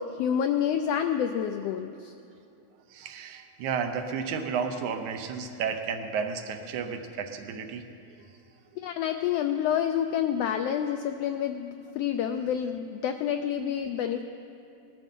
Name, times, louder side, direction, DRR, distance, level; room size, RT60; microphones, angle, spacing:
voice 1, 0.0-2.1 8.8-14.2, left 9 dB, 85° left, 7 dB, 1.4 m, -28 dB
voice 2, 2.9-7.8, right 6 dB, 90° right, 6 dB, 2.3 m, -32 dB
18.5 x 12.0 x 5.4 m, 2.7 s
omnidirectional pair, 3.3 m